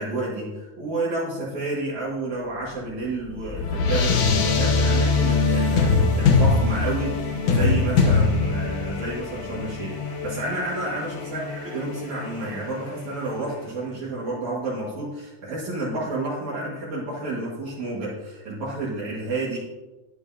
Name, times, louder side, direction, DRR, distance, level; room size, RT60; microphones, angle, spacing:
voice 1, 0.0-19.6, right 2 dB, 60° right, -8 dB, 3.0 m, -30 dB
sound 1, 2.7-13.4, left 4 dB, 70° left, 2.4 m, -23 dB
11.0 x 9.8 x 2.8 m, 1.1 s
omnidirectional pair, 3.8 m